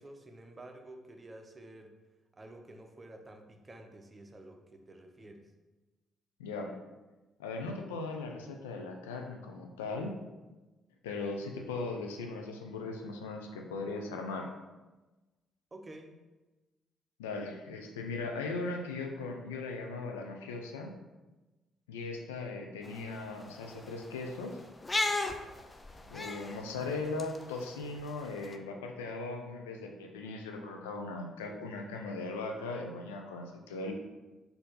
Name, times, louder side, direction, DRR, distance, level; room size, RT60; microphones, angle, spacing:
voice 1, 0.0-1.9 2.3-5.5 15.7-16.2, right 1 dB, 30° right, 4 dB, 0.6 m, -50 dB
voice 2, 6.4-6.7 7.4-10.1 11.0-14.5 17.2-20.9 21.9-24.6 26.1-33.9, left 3 dB, 85° left, 3 dB, 0.4 m, -38 dB
sound 1, 22.8-28.5, left 2 dB, 25° left, 0.4 m, -38 dB
4.2 x 2.7 x 3.9 m, 1.1 s
hypercardioid pair, 45°, 0 cm